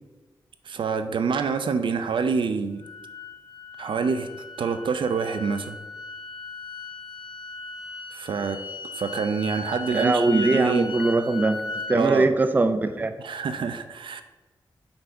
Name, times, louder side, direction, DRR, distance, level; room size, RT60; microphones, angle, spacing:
voice 1, 0.7-2.8 3.8-4.3 4.6-5.8 8.1-8.6 9.0-11.0 11.9-12.3 13.2-14.2, right 5 dB, 75° right, 9 dB, 0.6 m, -26 dB
sound 1, 2.8-12.0, left 3 dB, 70° left, 0.8 m, -37 dB
voice 2, 9.9-11.6 11.9-13.1, right 3 dB, 20° right, 9 dB, 0.4 m, -21 dB
7.9 x 4.0 x 5.6 m, 1.2 s
wide cardioid pair, 160°, 8 cm